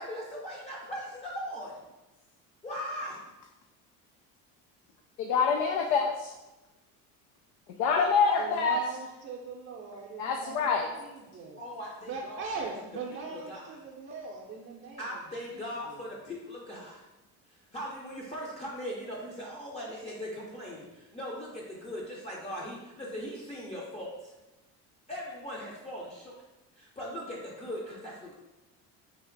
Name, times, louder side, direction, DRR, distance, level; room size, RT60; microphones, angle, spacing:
voice 1, 0.0-1.8 2.6-3.3 11.6-12.6 13.1-13.8 15.0-17.0 17.5-24.4 25.1-26.3 26.7-28.3, equal, 20° left, -4 dB, 0.6 m, -39 dB
voice 2, 5.2-6.3 7.8-8.8 10.2-10.9, left 5 dB, 85° left, 2 dB, 0.5 m, -26 dB
voice 3, 8.4-11.6 12.0-15.0 15.6-15.7, right 5 dB, 40° right, -2 dB, 0.5 m, -40 dB
3.4 x 2.5 x 3.8 m, 1.0 s
cardioid pair, 120°, 33 cm